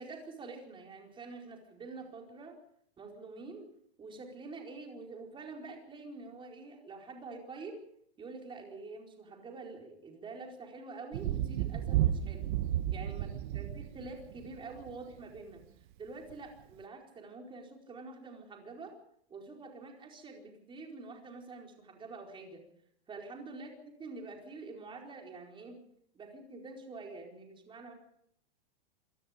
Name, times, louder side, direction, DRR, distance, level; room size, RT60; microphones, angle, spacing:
voice 1, 0.0-2.6 3.0-3.7 4.0-7.8 8.2-12.4 12.9-13.3 13.5-15.6 16.0-18.9 19.3-22.6 23.1-25.8 26.1-27.9, right 3 dB, 15° right, 1 dB, 4.6 m, -46 dB
Thunder, 11.1-15.0 16.3-16.4, right 12 dB, 50° right, 1.1 m, -32 dB
27.5 x 18.5 x 5.2 m, 0.69 s
supercardioid pair, 150°, 32 cm